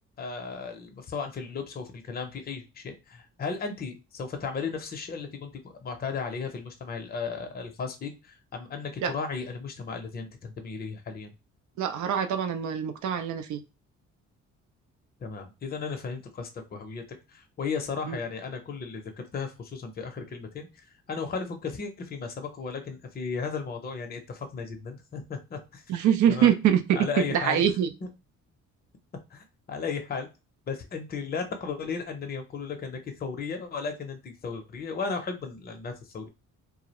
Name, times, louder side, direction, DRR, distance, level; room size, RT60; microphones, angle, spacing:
voice 1, 0.2-11.3 15.2-17.0 17.3-25.8 26.3-26.5 26.9-27.6 29.3-30.3 30.7-36.3, left 5 dB, 30° left, 0.6 m, -35 dB
voice 2, 11.8-13.6 18.1-18.2 25.9-26.8 27.2-27.9, right 9 dB, 70° right, 0.5 m, -24 dB
2.3 x 2.0 x 2.9 m
cardioid pair, 90°, 30 cm